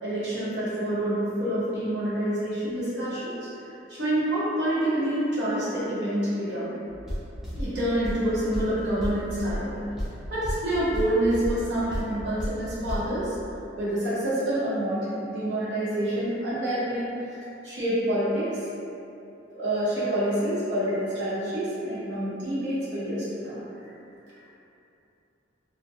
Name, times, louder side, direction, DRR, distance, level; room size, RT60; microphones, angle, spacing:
voice 1, 0.0-3.3 3.9-6.7 7.6-9.7 10.3-13.3 13.8-18.6 19.5-23.9 24.3-24.4, right 1 dB, 65° right, -11 dB, 0.9 m, -27 dB
sound 1, 6.9-13.1, equal, 5° right, 0.4 m, -34 dB
2.3 x 2.2 x 2.6 m, 2.7 s
head